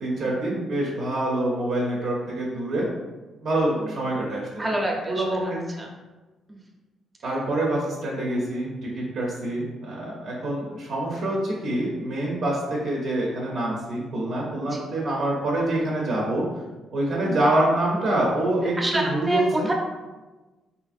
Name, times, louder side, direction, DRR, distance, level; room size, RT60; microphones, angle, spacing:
voice 1, 0.0-2.9 3.4-4.7 5.0-5.6 7.2-16.4 16.9-19.7, right 1 dB, 65° right, -3 dB, 0.5 m, -26 dB
voice 2, 4.6-5.9 6.5-6.6 14.7-14.9 17.2-17.4 18.8-19.7, right 1 dB, 25° right, 0 dB, 0.6 m, -28 dB
2.7 x 2.5 x 2.4 m, 1.2 s
cardioid pair, 90°, 0 cm